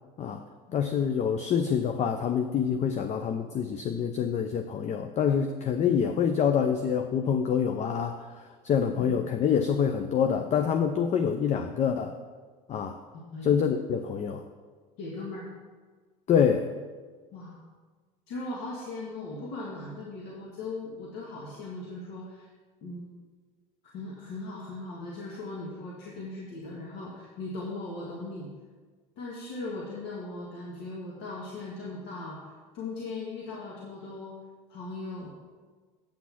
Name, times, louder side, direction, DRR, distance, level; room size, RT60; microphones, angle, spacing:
voice 1, 0.7-12.2 12.7-13.0 13.4-14.4 16.3-16.7, left 7 dB, 40° left, 7 dB, 0.6 m, -26 dB
voice 2, 15.0-15.5 17.3-17.6 18.3-22.5 22.8-23.1 23.9-28.5 29.2-34.4 34.7-35.3, left 2 dB, 70° left, -4 dB, 1.7 m, -38 dB
8.5 x 6.1 x 5.9 m, 1.5 s
supercardioid pair, 95°, 18 cm